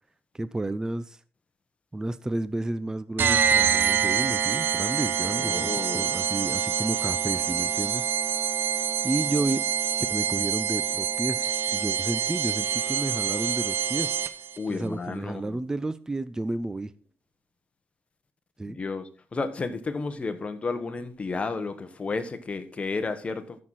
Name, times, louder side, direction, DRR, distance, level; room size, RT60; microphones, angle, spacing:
voice 1, 0.3-1.2 1.9-8.1 9.0-9.7 10.1-14.1 14.7-16.9 18.6-18.8, right 2 dB, 15° right, 0.6 m, -31 dB
sound 1, 3.2-14.6, right 8 dB, 60° right, 0.7 m, -26 dB
voice 2, 5.2-6.1 14.6-15.6 18.7-23.6, left 3 dB, 30° left, 1.3 m, -32 dB
13.5 x 6.4 x 4.2 m
cardioid pair, 105°, 4 cm